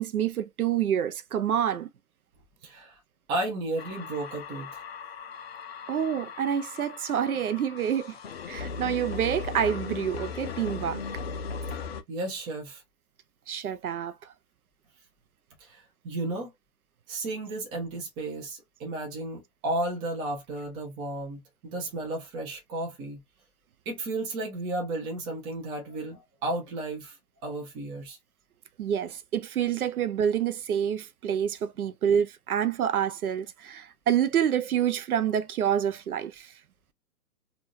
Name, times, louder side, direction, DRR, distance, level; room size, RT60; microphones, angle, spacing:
voice 1, 0.0-1.9 5.9-8.1 8.5-11.0 13.5-14.1 28.8-36.5, right 9 dB, 60° right, 0.6 m, -27 dB
voice 2, 2.6-2.9 3.3-4.8 12.1-12.8 15.6-16.5 17.1-23.2 23.9-27.2 27.4-28.2, right 2 dB, 10° right, 0.6 m, -33 dB
sound 1, 3.8-12.0, left 5 dB, 40° left, 0.5 m, -38 dB
3.6 x 2.5 x 2.6 m
figure-of-eight pair, 125°, 49 cm